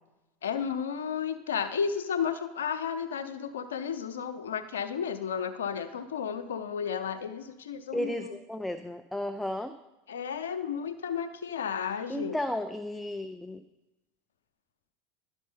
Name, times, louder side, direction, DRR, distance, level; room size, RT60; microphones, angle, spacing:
voice 1, 0.4-8.4 10.1-12.4, left 7 dB, 85° left, 9 dB, 0.8 m, -33 dB
voice 2, 7.9-9.7 12.1-13.6, left 1 dB, 5° left, 8 dB, 0.5 m, -33 dB
11.5 x 5.4 x 5.6 m, 1.0 s
hypercardioid pair, 95°, 0 cm